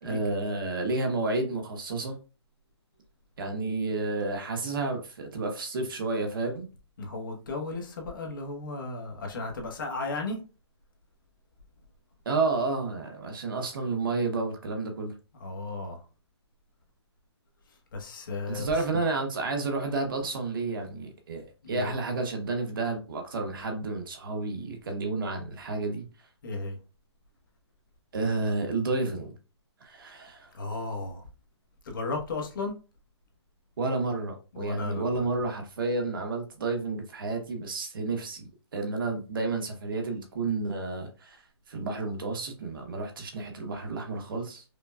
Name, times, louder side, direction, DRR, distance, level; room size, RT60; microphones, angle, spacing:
voice 1, 0.0-2.2 3.4-6.7 12.2-15.1 18.5-26.1 28.1-29.3 29.8-30.5 33.8-41.4 41.7-44.6, right 3 dB, 50° right, 1.0 m, -31 dB
voice 2, 7.0-10.4 15.4-16.0 17.9-19.0 21.6-21.9 26.4-26.8 30.5-31.3 31.8-32.7 34.5-35.3, left 3 dB, 45° left, 1.0 m, -34 dB
5.0 x 2.2 x 2.3 m
hypercardioid pair, 170°, 15 cm